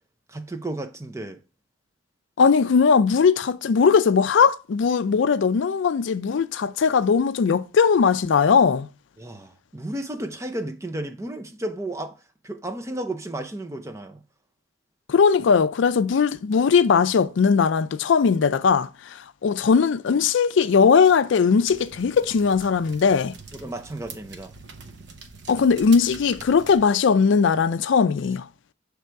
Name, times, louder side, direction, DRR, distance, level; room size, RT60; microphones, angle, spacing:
voice 1, 0.3-1.4 9.2-12.2 12.4-14.2 23.5-24.5, right 1 dB, 15° right, 0.5 m, -33 dB
voice 2, 2.4-8.9 15.1-23.3 25.5-28.5, left 5 dB, 75° left, 0.4 m, -19 dB
sound 1, 21.7-26.9, right 4 dB, 65° right, 0.8 m, -44 dB
6.4 x 3.4 x 4.5 m
head